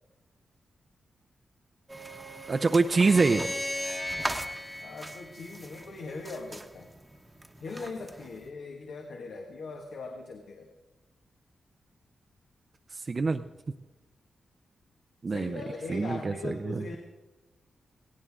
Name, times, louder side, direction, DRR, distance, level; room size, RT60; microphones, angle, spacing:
sound 1, 1.9-8.5, right 2 dB, 15° right, 1.1 m, -41 dB
voice 1, 2.5-3.5 12.9-13.4 15.2-15.6 15.9-16.8, right 4 dB, 35° right, 7 dB, 0.5 m, -25 dB
sound 2, 2.8-6.1, left 1 dB, 10° left, 0.5 m, -36 dB
voice 2, 4.8-6.9 7.6-10.7 15.3-17.0, left 3 dB, 85° left, 1 dB, 1.7 m, -40 dB
18.0 x 17.5 x 3.7 m, 1.1 s
wide cardioid pair, 120°, 0 cm